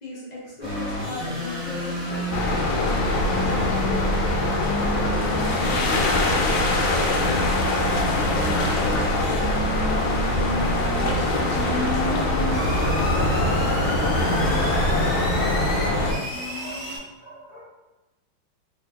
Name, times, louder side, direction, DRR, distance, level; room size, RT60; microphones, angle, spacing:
voice 1, 0.0-4.4 5.2-7.5 7.9-10.2 11.1-15.5, left 1 dB, 60° left, -6 dB, 0.4 m, -36 dB
sound 1, 0.6-17.0, equal, 30° right, 0.8 m, -30 dB
sound 2, 2.3-16.1, left 2 dB, 80° left, 1.3 m, -23 dB
voice 2, 15.7-17.6, right 1 dB, 65° right, -6 dB, 0.4 m, -44 dB
3.3 x 2.1 x 3.4 m, 1.0 s
omnidirectional pair, 2.1 m